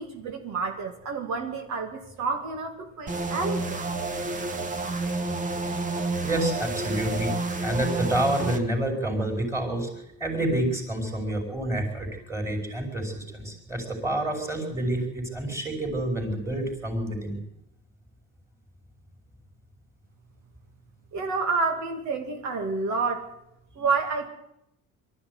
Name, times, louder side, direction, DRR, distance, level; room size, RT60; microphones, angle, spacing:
voice 1, 0.0-3.8 21.1-23.3 23.8-24.3, right 4 dB, 60° right, 4 dB, 2.6 m, -29 dB
sound 1, 3.1-8.6, right 3 dB, 25° right, 1.6 m, -30 dB
voice 2, 6.2-9.9 10.2-17.4, right 1 dB, 10° right, 2 dB, 4.9 m, -28 dB
23.5 x 13.5 x 9.5 m, 0.83 s
cardioid pair, 170°, 33 cm